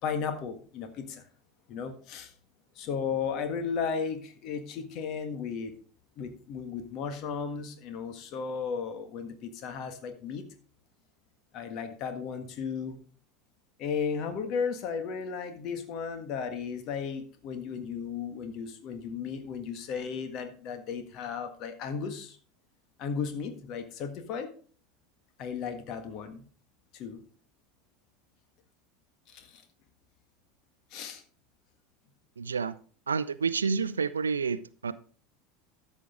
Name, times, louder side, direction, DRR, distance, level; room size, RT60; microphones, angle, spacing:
voice 1, 0.0-1.2 1.7-2.3 2.7-5.7 6.2-10.4 11.5-13.0 13.8-22.4 23.0-24.5 25.4-26.4 26.9-27.2 29.3-29.6 30.9-31.2, left 6 dB, 45° left, 1.6 m, -35 dB
voice 2, 32.4-32.8 33.1-34.9, right 5 dB, 80° right, 0.5 m, -29 dB
13.0 x 6.3 x 3.7 m
figure-of-eight pair, 75°, 0 cm